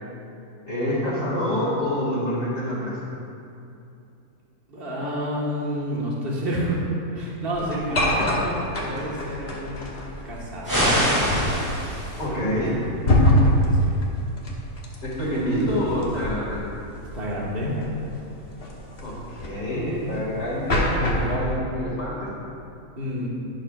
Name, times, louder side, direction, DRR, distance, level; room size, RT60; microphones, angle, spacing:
voice 1, 0.7-3.0 7.9-8.3 12.2-12.8 15.0-16.6 19.0-22.3, equal, 55° left, -6 dB, 2.7 m, -27 dB
voice 2, 4.7-6.8 7.1-8.5 8.8-9.9 10.2-11.0 12.3-12.6 13.5-14.1 17.1-17.7 23.0-23.3, equal, 40° right, -5 dB, 1.8 m, -30 dB
sound 1, 7.5-21.4, left 1 dB, 40° left, 1.3 m, -26 dB
sound 2, 10.6-12.3, equal, 15° right, 2.5 m, -23 dB
11.5 x 11.0 x 2.5 m, 2.7 s
omnidirectional pair, 1.6 m